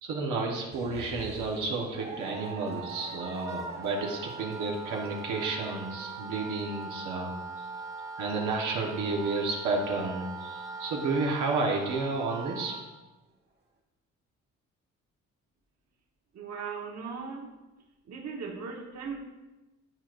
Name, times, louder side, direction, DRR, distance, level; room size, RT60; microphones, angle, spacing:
voice 1, 0.0-7.3 7.6-7.7 8.2-12.7, right 3 dB, 80° right, -1 dB, 1.2 m, -31 dB
sound 1, 0.7-6.8 7.3-7.4 8.6-8.8, right 4 dB, 35° right, 1.5 m, -45 dB
Wind instrument woodwind instrument, 2.9-12.9, right 4 dB, 10° right, 0.6 m, -41 dB
voice 2, 16.3-17.5 18.1-19.2, right 5 dB, 60° right, 0 dB, 1.2 m, -38 dB
11.0 x 4.5 x 2.5 m, 1.1 s
cardioid pair, 90°, 30 cm